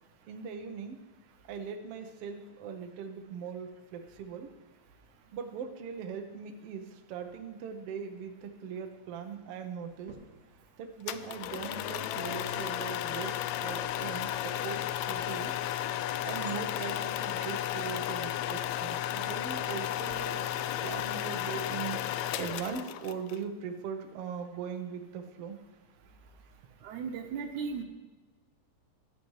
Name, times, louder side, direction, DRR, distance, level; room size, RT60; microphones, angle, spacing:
voice 1, 0.2-1.0 1.5-4.5 5.3-10.2 10.8-15.5 16.2-25.6, right 6 dB, 65° right, 5 dB, 1.7 m, -40 dB
sound 1, 9.8-20.2, right 3 dB, 40° right, 2.7 m, -58 dB
sound 2, 11.1-23.4, left 12 dB, 80° left, 1.7 m, -34 dB
voice 2, 26.8-27.8, right 5 dB, 85° right, 5 dB, 2.5 m, -36 dB
16.0 x 11.0 x 3.2 m, 1.3 s
omnidirectional pair, 3.4 m